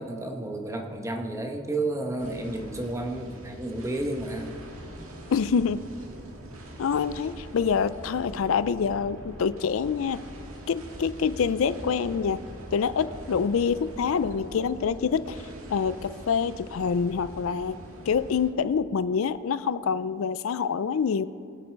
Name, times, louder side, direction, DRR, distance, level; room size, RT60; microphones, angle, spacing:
voice 1, 0.0-4.5, right 2 dB, 15° right, 3 dB, 1.1 m, -31 dB
sound 1, 2.2-18.5, right 1 dB, 90° right, 1.9 m, -43 dB
voice 2, 5.3-5.8 6.8-10.2 10.7-12.4 12.7-15.4 15.7-17.8 18.1-21.3, left 6 dB, 75° left, 15 dB, 0.4 m, -26 dB
22.5 x 8.2 x 4.6 m, 2.6 s
head